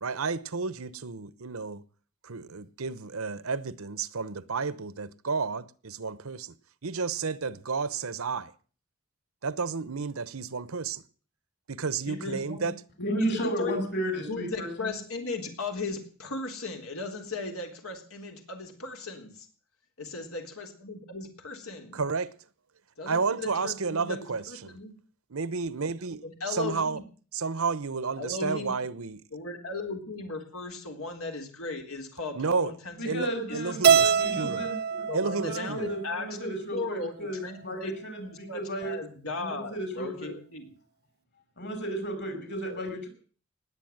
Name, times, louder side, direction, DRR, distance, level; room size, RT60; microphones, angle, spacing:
voice 1, 0.0-1.8 2.2-6.5 6.8-8.5 9.4-11.0 11.7-12.7 21.9-22.3 23.1-24.8 25.3-27.0 27.3-29.2 32.3-32.7 33.0-34.6 35.1-35.9, right 4 dB, 80° right, 0.9 m, -31 dB
voice 2, 12.1-12.7 13.0-13.9 14.3-19.5 20.0-22.0 23.0-24.9 26.2-27.0 28.2-28.8 29.3-33.2 33.5-34.6 35.1-40.7, left 3 dB, 90° left, 3.8 m, -37 dB
voice 3, 13.0-14.9 33.0-33.8 34.2-39.0 39.4-40.3 41.6-43.1, right 1 dB, 55° left, 5.7 m, -33 dB
Keyboard (musical), 33.8-36.2, right 7 dB, 50° right, 0.7 m, -24 dB
19.5 x 8.3 x 7.9 m
head